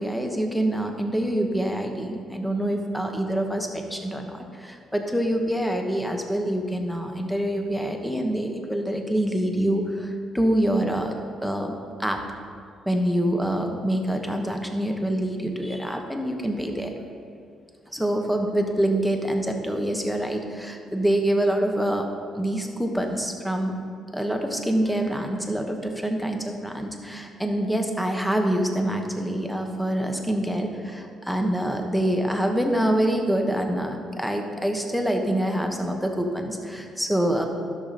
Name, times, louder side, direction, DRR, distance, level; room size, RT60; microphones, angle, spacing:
voice 1, 0.0-11.1 11.4-11.7 12.0-12.2 12.8-16.9 17.9-22.1 22.3-23.7 24.1-37.5, right 1 dB, ahead, 3 dB, 1.1 m, -26 dB
12.0 x 6.4 x 4.2 m, 2.2 s
cardioid pair, 90°, 0 cm